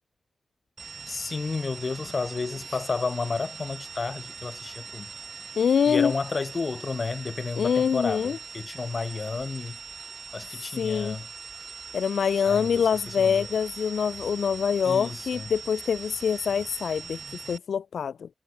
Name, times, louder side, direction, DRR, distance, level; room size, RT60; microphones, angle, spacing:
sound 1, 0.8-17.6, right 5 dB, 70° right, 5.4 m, -41 dB
voice 1, 1.1-5.1 5.8-9.8 10.3-11.3 12.4-13.5 14.8-15.5, left 4 dB, 60° left, 2.8 m, -32 dB
voice 2, 5.6-6.1 7.6-8.4 10.7-11.2 11.9-18.3, left 7 dB, 90° left, 0.5 m, -25 dB
cardioid pair, 45°, 0 cm